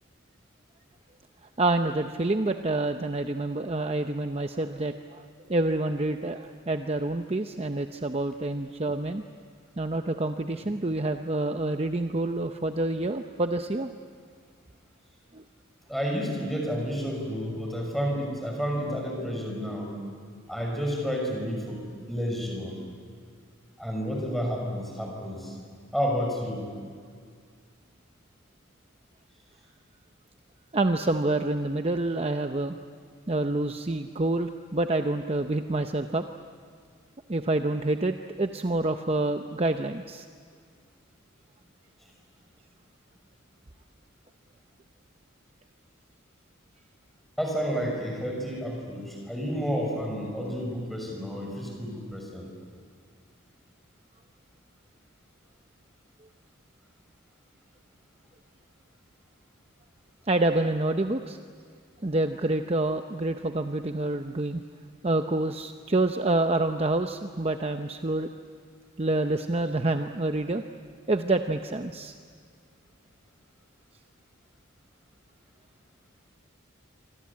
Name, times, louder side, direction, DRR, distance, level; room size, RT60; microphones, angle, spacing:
voice 1, 1.6-9.2 9.8-13.9 15.3-15.4 30.7-32.8 33.3-36.2 37.3-40.2 60.3-61.4 62.0-64.6 65.0-68.3 69.0-70.6 71.1-72.1, right 2 dB, 30° right, 6 dB, 0.7 m, -27 dB
voice 2, 15.9-19.9 20.5-21.8 22.1-22.8 23.8-25.6 25.9-26.7 47.4-52.5, equal, ahead, 0 dB, 6.2 m, -30 dB
26.5 x 25.5 x 8.6 m, 2.1 s
head